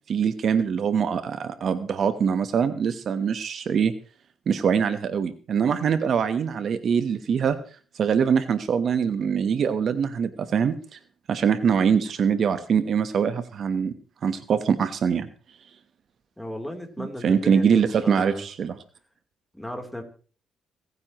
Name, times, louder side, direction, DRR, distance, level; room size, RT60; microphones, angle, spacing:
voice 1, 0.1-3.9 4.5-7.6 7.9-11.0 11.3-13.9 14.2-15.3 17.0-18.8, right 7 dB, 60° right, 11 dB, 1.1 m, -23 dB
voice 2, 16.4-17.6 18.0-18.4 19.5-20.0, equal, 5° left, 3 dB, 3.4 m, -35 dB
28.0 x 9.7 x 3.1 m, 0.39 s
cardioid pair, 90°, 0 cm